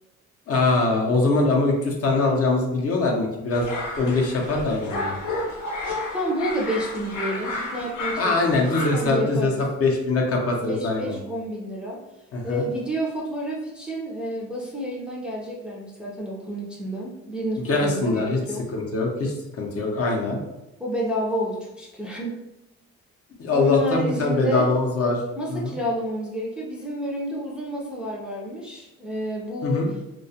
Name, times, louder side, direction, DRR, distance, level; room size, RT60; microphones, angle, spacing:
voice 1, 0.5-5.1 8.2-11.2 12.3-12.6 17.7-18.4 18.7-20.4 23.4-25.2 25.5-25.7 29.6-29.9, left 3 dB, 50° left, 0 dB, 0.6 m, -23 dB
sound 1, 3.5-9.1, left 2 dB, 85° left, 0.8 m, -32 dB
voice 2, 6.1-8.7 8.9-9.6 10.7-12.0 12.4-18.7 20.8-22.4 23.5-24.7 25.4-29.9, equal, 5° right, -4 dB, 0.4 m, -30 dB
2.2 x 2.1 x 2.6 m, 0.96 s
cardioid pair, 90°, 30 cm